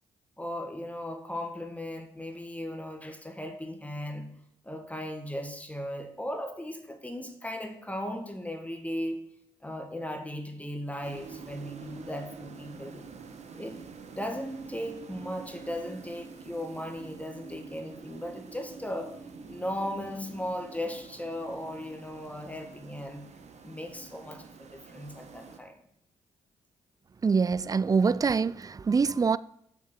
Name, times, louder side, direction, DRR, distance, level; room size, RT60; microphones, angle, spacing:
voice 1, 0.4-4.3 4.6-9.2 9.6-13.1 13.5-13.8 14.1-19.2 19.5-23.3 23.6-25.8, left 1 dB, 10° left, 1.7 m, -37 dB
sound 1, 11.0-25.6, right 5 dB, 45° right, 1.3 m, -47 dB
voice 2, 27.2-29.4, right 5 dB, 25° right, 0.4 m, -24 dB
8.2 x 6.2 x 5.9 m
hypercardioid pair, 40°, 15 cm